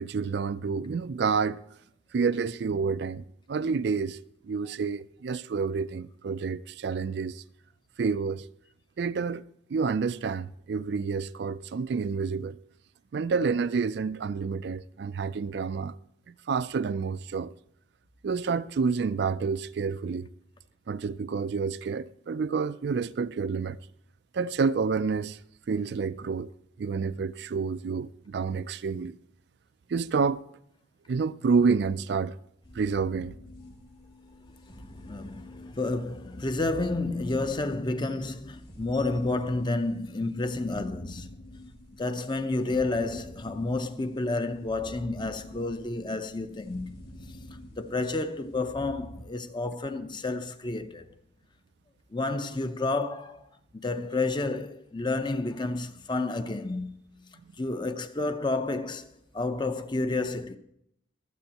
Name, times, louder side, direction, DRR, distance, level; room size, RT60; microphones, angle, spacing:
voice 1, 0.0-1.6 2.1-4.2 4.4-7.4 8.0-8.5 9.0-9.4 9.7-12.6 13.1-16.0 16.3-17.5 18.2-20.3 20.9-23.8 24.3-25.4 25.7-26.5 26.8-29.2 29.9-30.4 31.1-32.4 32.7-33.3, right 5 dB, 60° right, 0.4 m, -29 dB
sound 1, 32.6-49.2, left 1 dB, 50° left, 2.4 m, -48 dB
voice 2, 35.0-41.3 42.0-46.9 47.7-51.1 52.1-53.4 53.7-56.9 57.6-60.6, left 2 dB, 25° left, 0.6 m, -30 dB
23.5 x 8.0 x 2.9 m
head